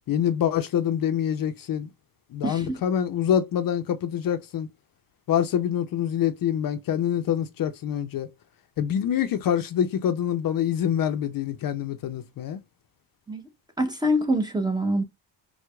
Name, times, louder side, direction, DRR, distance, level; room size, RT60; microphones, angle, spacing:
voice 1, 0.1-1.9 2.3-4.7 5.3-8.3 8.8-12.6, left 9 dB, 50° left, 0.5 m, -25 dB
voice 2, 2.4-2.8 13.3-13.5 13.8-15.0, equal, 10° right, 0.6 m, -25 dB
4.5 x 2.1 x 2.2 m
cardioid pair, 110°, 44 cm